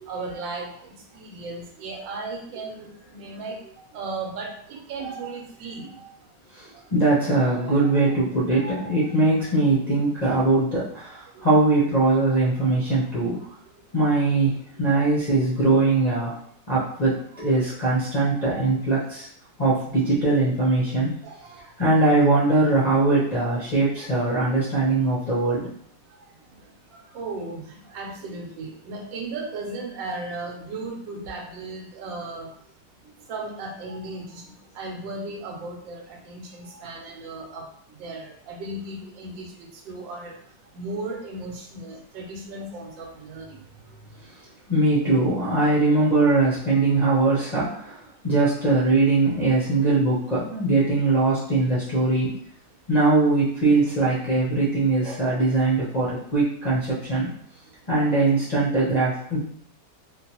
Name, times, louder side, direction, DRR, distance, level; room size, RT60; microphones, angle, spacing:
voice 1, 0.0-0.7 1.1-3.6 3.9-6.1 8.0-8.2 8.5-9.0 11.4-11.5 17.3-17.4 18.3-18.7 21.2-21.6 27.1-32.5 33.3-34.4 34.8-37.6 38.0-40.4 40.7-43.5 48.5-48.6, right 3 dB, 90° right, 1 dB, 1.4 m, -36 dB
voice 2, 6.5-13.4 13.9-16.3 16.7-19.3 19.6-21.1 21.8-25.7 44.7-52.3 52.9-57.3 57.9-59.4, right 2 dB, 45° left, -8 dB, 0.5 m, -21 dB
3.7 x 2.5 x 2.8 m, 0.64 s
omnidirectional pair, 2.0 m